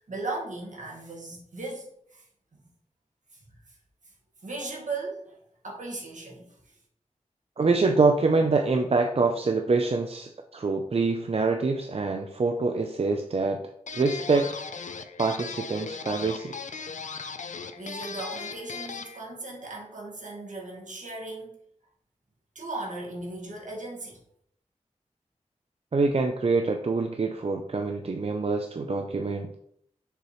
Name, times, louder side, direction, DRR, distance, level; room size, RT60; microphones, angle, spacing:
voice 1, 0.0-2.2 2.5-2.7 4.4-5.4 5.6-6.7 17.8-21.6 22.6-24.2, right 2 dB, 75° right, 1.9 m, -37 dB
voice 2, 7.6-13.6 13.9-14.5 15.2-16.5 25.9-29.6, right 3 dB, 50° right, 0.5 m, -25 dB
sound 1, 13.9-19.2, left 5 dB, 70° left, 0.5 m, -38 dB
6.7 x 4.6 x 3.1 m
wide cardioid pair, 70°, 13 cm